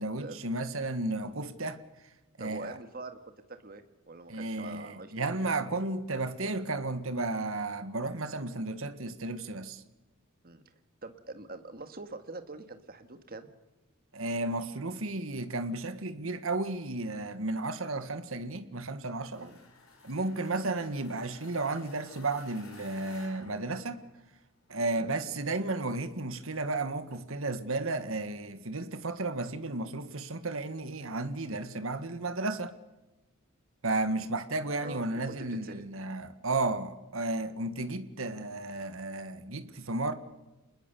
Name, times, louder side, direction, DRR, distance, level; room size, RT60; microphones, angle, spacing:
voice 1, 0.0-1.8 2.4-2.8 4.3-9.8 14.1-19.5 20.0-24.0 24.7-32.7 33.8-40.1, right 2 dB, 65° right, 1.6 m, -33 dB
voice 2, 2.4-3.2 3.5-5.3 10.4-10.6 11.0-13.5 19.4-19.6 25.0-25.1 34.8-35.8, right 3 dB, 45° right, 1.8 m, -44 dB
sound 1, 19.2-24.5, left 3 dB, 75° left, 5.8 m, -55 dB
28.0 x 20.5 x 7.0 m
head